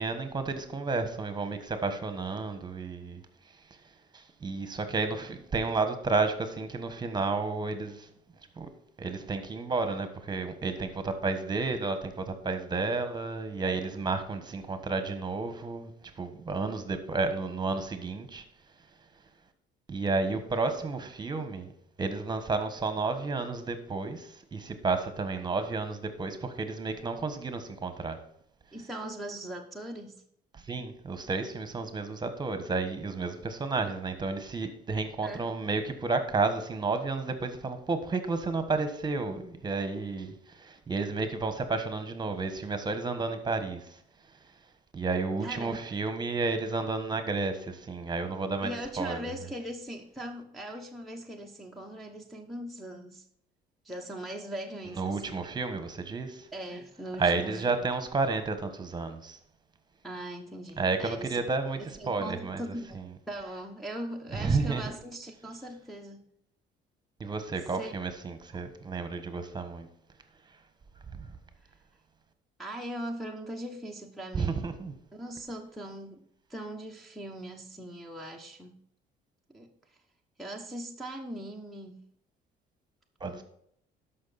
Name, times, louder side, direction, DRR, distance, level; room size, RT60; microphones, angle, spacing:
voice 1, 0.0-3.2 4.1-8.1 8.6-8.7 9.0-15.9 16.2-18.4 19.9-21.7 22.0-28.2 30.5-44.0 44.9-49.3 54.9-56.5 57.2-59.4 60.8-62.6 64.3-64.8 67.2-69.9 71.2-71.3 74.3-74.9 83.2-83.4, right 3 dB, 25° right, 1.4 m, -31 dB
voice 2, 28.7-30.2 35.2-35.5 45.4-45.8 48.6-53.2 53.8-55.4 56.5-57.6 60.0-61.4 61.8-63.0 63.3-66.2 67.7-67.9 68.5-68.6 72.6-74.7 75.1-78.8 79.5-79.7 80.4-82.1 83.3-83.4, right 1 dB, ahead, 1.1 m, -40 dB
12.5 x 5.8 x 4.2 m
cardioid pair, 110°, 17 cm